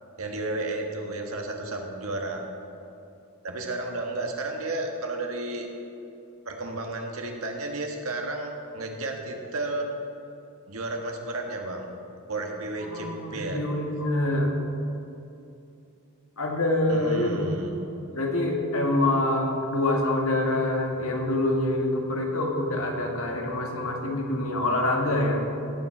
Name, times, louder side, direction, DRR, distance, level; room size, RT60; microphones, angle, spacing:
voice 1, 0.2-2.4 3.4-5.7 6.4-9.9 10.7-11.9 12.3-13.7 16.9-17.8, right 2 dB, 70° right, 2 dB, 1.5 m, -32 dB
voice 2, 12.8-14.5 16.4-17.4 18.1-25.4, left 1 dB, 70° left, 1 dB, 1.8 m, -26 dB
17.0 x 7.4 x 4.5 m, 2.7 s
head